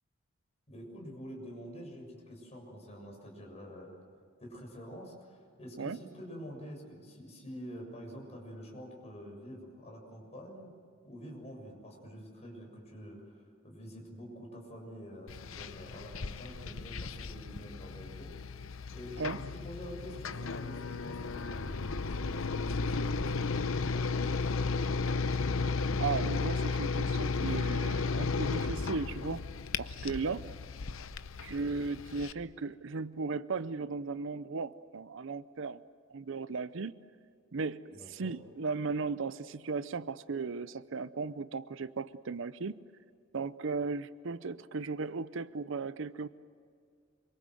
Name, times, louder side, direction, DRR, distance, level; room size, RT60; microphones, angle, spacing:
voice 1, 0.7-3.9 4.4-10.7 11.0-18.3 18.9-24.4 37.9-38.3, equal, 35° left, 0 dB, 7.0 m, -47 dB
sound 1, 15.3-32.3, left 4 dB, 75° left, 0.8 m, -34 dB
voice 2, 26.0-29.4 29.8-30.5 31.4-35.8 36.1-36.9 37.5-42.8 43.3-46.3, right 4 dB, 65° right, 15 dB, 0.6 m, -36 dB
26.5 x 24.5 x 7.7 m, 2.2 s
head